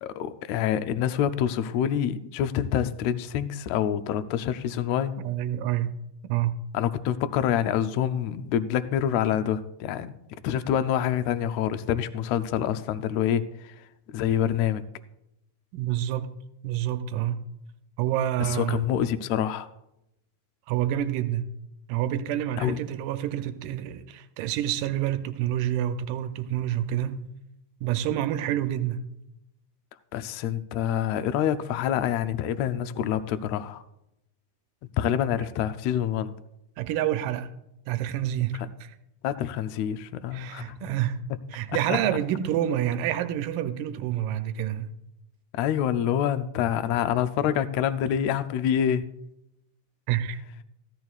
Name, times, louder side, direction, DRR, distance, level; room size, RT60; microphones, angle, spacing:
voice 1, 0.0-5.2 6.7-10.1 10.4-13.7 14.1-14.8 18.4-19.7 22.6-22.8 30.1-33.8 35.0-36.3 38.6-38.7 39.2-40.8 41.9-42.0 45.5-49.1, left 10 dB, 80° left, 1.6 m, -26 dB
voice 2, 5.2-5.9 6.3-6.5 15.7-16.3 16.6-17.4 18.0-18.8 20.7-21.5 21.9-27.3 27.8-29.0 36.8-37.5 37.9-39.0 40.3-41.2 41.5-44.9 50.1-50.4, right 11 dB, 90° right, 2.2 m, -28 dB
15.5 x 13.5 x 2.4 m
omnidirectional pair, 3.7 m